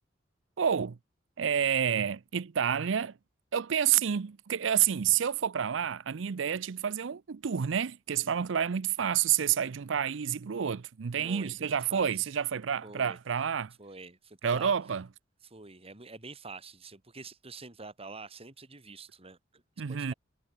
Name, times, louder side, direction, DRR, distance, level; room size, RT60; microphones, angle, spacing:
voice 1, 0.6-1.0 1.4-3.2 3.5-13.7 14.4-15.1 19.8-20.1, right 8 dB, 85° right, 0.5 m, -29 dB
voice 2, 11.2-12.3 12.8-13.2 13.8-14.7 15.4-19.6 19.9-20.1, right 3 dB, 30° right, 2.4 m, -47 dB
head